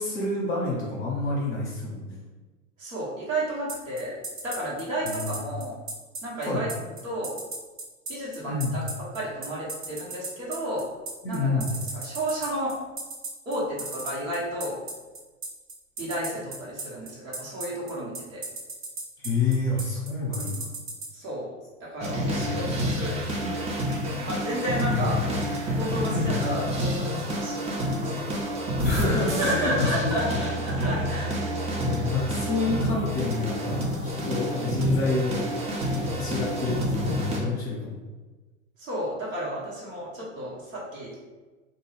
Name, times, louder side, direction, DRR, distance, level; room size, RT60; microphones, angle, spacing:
voice 1, 0.0-2.2 5.0-5.4 6.4-6.7 8.5-8.8 11.2-11.8 19.2-20.7 22.4-22.8 23.4-23.5 24.9-25.1 26.1-26.3 28.8-30.4 31.7-35.5 35.9-38.0, left 3 dB, 30° left, -4 dB, 0.7 m, -28 dB
voice 2, 2.8-5.8 6.2-6.7 7.0-7.4 8.1-10.9 11.3-11.6 11.9-12.7 13.4-14.8 16.0-18.4 21.1-21.5 21.8-23.6 24.2-25.2 25.7-28.5 29.4-31.3 38.8-41.2, right 1 dB, 75° right, -6 dB, 1.2 m, -32 dB
sound 1, 3.7-21.1, right 3 dB, 35° right, 0.9 m, -35 dB
sound 2, 22.0-37.4, equal, 15° right, 0.4 m, -28 dB
2.5 x 2.3 x 3.2 m, 1.2 s
figure-of-eight pair, 85°, 39 cm